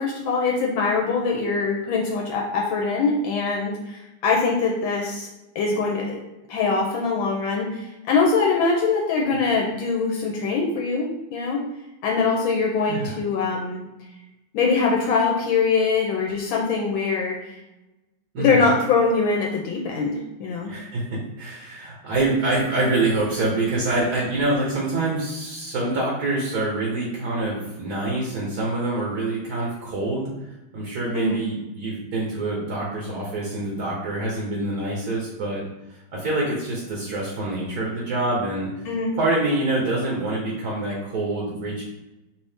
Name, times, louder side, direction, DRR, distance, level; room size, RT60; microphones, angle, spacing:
voice 1, 0.0-5.3 5.5-6.2 6.5-11.6 12.0-13.8 14.5-17.4 18.4-20.7 31.1-31.4 38.9-39.1, left 4 dB, 80° left, 0 dB, 1.4 m, -23 dB
voice 2, 18.3-18.7 20.6-30.3 30.7-35.6 35.9-38.7 39.1-41.8, right 2 dB, 55° right, -3 dB, 1.3 m, -26 dB
5.5 x 2.6 x 3.5 m, 0.98 s
omnidirectional pair, 2.3 m